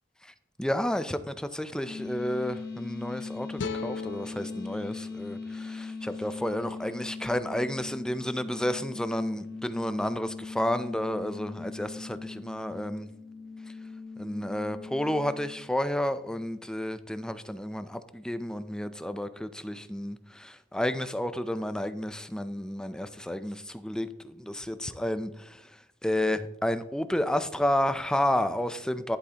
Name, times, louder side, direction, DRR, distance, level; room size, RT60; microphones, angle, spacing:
voice 1, 0.6-13.1 14.2-25.6 26.0-29.2, left 1 dB, 5° left, 0.4 m, -31 dB
sound 1, 1.8-15.7, left 4 dB, 60° left, 1.8 m, -40 dB
sound 2, 3.6-6.8, left 4 dB, 85° left, 0.5 m, -41 dB
11.0 x 8.2 x 2.9 m
head